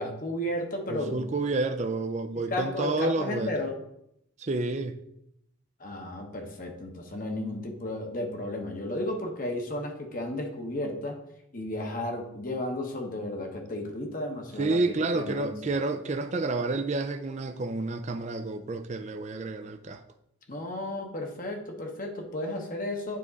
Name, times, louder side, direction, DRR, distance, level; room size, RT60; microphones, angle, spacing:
voice 1, 0.0-1.2 2.5-3.8 5.8-11.2 11.5-15.8 20.5-23.2, left 1 dB, 40° left, 1.0 m, -33 dB
voice 2, 0.9-3.5 4.4-5.0 14.6-20.0, right 3 dB, 35° right, 0.4 m, -29 dB
9.4 x 3.6 x 4.0 m
head